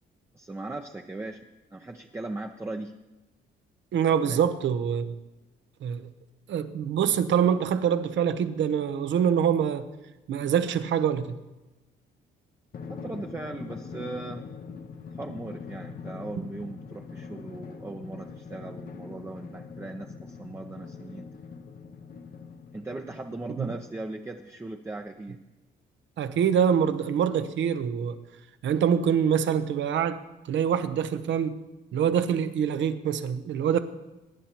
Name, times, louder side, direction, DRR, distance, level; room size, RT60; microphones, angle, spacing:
voice 1, 0.3-2.9 4.2-4.4 12.9-14.4 15.2-21.3 22.7-25.4, right 2 dB, 15° right, 3 dB, 0.7 m, -38 dB
voice 2, 3.9-5.1 5.8-6.1 6.5-9.9 10.3-11.4 23.6-23.7 26.2-28.2 28.6-30.2 30.5-31.6 31.9-33.8, right 8 dB, 70° right, 10 dB, 0.9 m, -25 dB
Drum, 12.7-23.8, left 5 dB, 45° left, 0.8 m, -42 dB
22.5 x 9.9 x 3.0 m, 1.1 s
cardioid pair, 90°, 20 cm